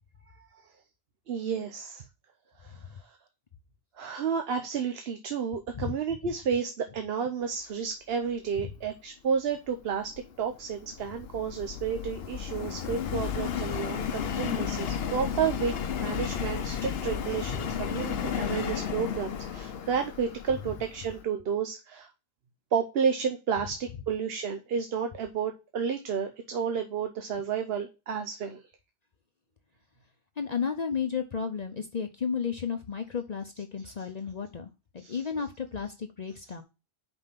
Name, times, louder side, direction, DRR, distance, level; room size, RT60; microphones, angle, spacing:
voice 1, 1.3-2.0 2.6-2.8 3.1-3.2 4.0-10.1 10.4-15.7 16.0-22.1 22.7-28.6 33.8-33.9 35.0-35.2, right 7 dB, 75° right, 6 dB, 1.0 m, -31 dB
Subway metro underground, 9.9-21.2, left 8 dB, 75° left, 1.0 m, -33 dB
voice 2, 30.4-36.6, left 6 dB, 45° left, 6 dB, 0.7 m, -33 dB
5.4 x 4.4 x 5.7 m, 0.29 s
omnidirectional pair, 1.0 m